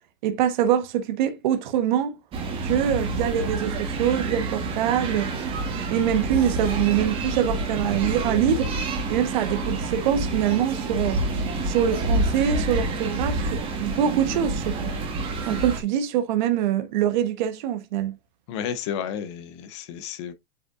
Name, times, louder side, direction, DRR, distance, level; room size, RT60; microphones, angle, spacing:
voice 1, 0.2-2.2 2.6-5.3 5.9-8.7 9.1-11.2 11.6-14.9 15.5-18.1, right 10 dB, 45° right, 1.2 m, -24 dB
sound 1, 2.3-15.8, right 2 dB, 15° right, 1.5 m, -28 dB
voice 2, 18.5-20.3, left 8 dB, 25° left, 0.6 m, -32 dB
8.2 x 5.2 x 2.5 m
supercardioid pair, 180°, 32 cm